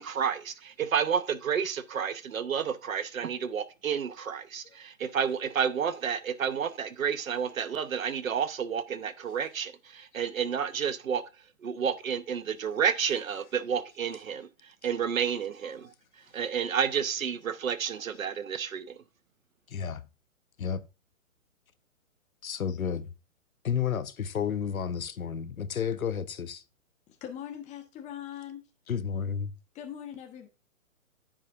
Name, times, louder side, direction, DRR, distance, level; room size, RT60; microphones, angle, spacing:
voice 1, 0.0-11.2 11.6-14.5 14.8-15.9 16.3-19.0, right 7 dB, 70° right, 1.1 m, -30 dB
voice 2, 19.7-20.0 20.6-20.8 22.4-23.1 23.6-26.6 28.9-29.5, left 7 dB, 75° left, 1.0 m, -31 dB
voice 3, 27.1-28.7 29.7-30.5, left 10 dB, 15° left, 1.2 m, -41 dB
14.0 x 5.0 x 2.5 m
figure-of-eight pair, 125°, 42 cm